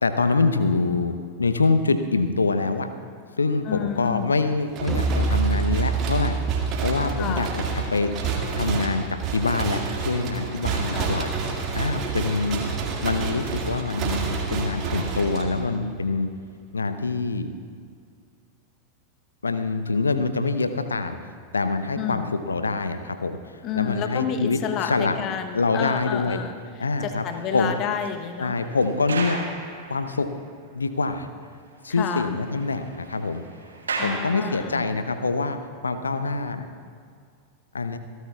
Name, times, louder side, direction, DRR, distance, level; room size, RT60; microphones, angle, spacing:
voice 1, 0.0-2.9 3.4-6.4 6.8-7.5 7.9-8.1 8.5-11.3 11.7-12.6 13.0-16.3 16.7-17.5 19.4-21.2 21.5-23.4 23.7-25.2 25.5-26.4 26.8-27.3 27.5-27.7 28.4-29.4 29.9-30.3 30.7-31.3 31.8-33.4 34.0-35.6 35.8-36.7 37.7-38.0, left 3 dB, 75° left, 10 dB, 0.8 m, -25 dB
voice 2, 3.6-4.3 7.2-7.6 10.9-11.2 22.0-22.3 23.6-26.6 27.0-28.6 31.9-32.3 34.0-35.0, left 8 dB, 35° left, 7 dB, 1.0 m, -30 dB
sound 1, 4.7-15.9, right 5 dB, 35° right, 2.1 m, -29 dB
sound 2, 4.9-10.3, right 3 dB, 10° right, 0.4 m, -29 dB
sound 3, 26.9-30.6 31.0-31.1 31.4-31.5 31.8-35.1 35.7-35.9, right 3 dB, 70° right, 1.7 m, -37 dB
27.5 x 12.5 x 2.4 m, 2.2 s
figure-of-eight pair, 90°, 0 cm